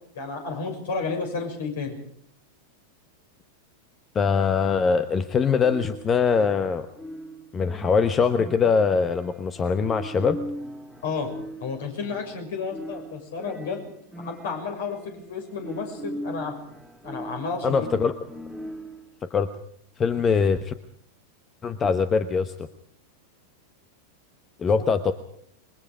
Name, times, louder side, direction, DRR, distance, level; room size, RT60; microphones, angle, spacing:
voice 1, 0.1-2.0 11.0-11.3 11.6-16.5 17.0-17.9, left 4 dB, 60° left, 4 dB, 6.4 m, -32 dB
voice 2, 4.1-6.9 7.5-10.4 17.6-18.1 19.3-19.5 20.0-20.7 21.6-22.5 24.6-25.1, left 5 dB, 20° left, 11 dB, 1.1 m, -22 dB
sound 1, 5.6-19.1, equal, ahead, 2.5 m, -40 dB
27.5 x 22.5 x 5.1 m, 0.65 s
figure-of-eight pair, 90°, 0 cm